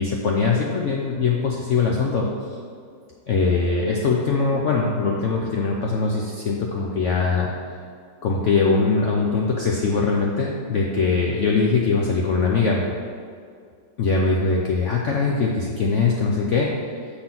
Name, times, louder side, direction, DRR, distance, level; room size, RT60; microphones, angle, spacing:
voice 1, 0.0-2.3 3.3-7.5 8.2-12.8 14.0-16.7, left 4 dB, 75° left, -1 dB, 0.6 m, -21 dB
6.4 x 3.8 x 5.8 m, 2.2 s
omnidirectional pair, 1.9 m